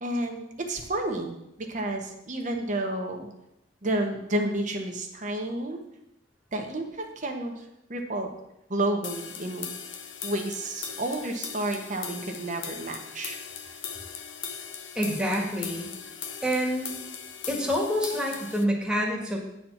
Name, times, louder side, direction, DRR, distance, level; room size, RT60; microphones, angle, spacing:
voice 1, 0.0-3.3 3.8-5.8 6.5-7.6 7.9-8.3 8.7-9.7 10.2-13.4, right 1 dB, 40° right, 3 dB, 1.1 m, -31 dB
sound 1, 9.0-18.6, left 7 dB, 90° left, 0.8 m, -39 dB
voice 2, 15.0-15.9 16.4-17.0 17.5-19.4, equal, 5° right, -1 dB, 1.7 m, -27 dB
9.4 x 4.4 x 7.1 m, 0.84 s
head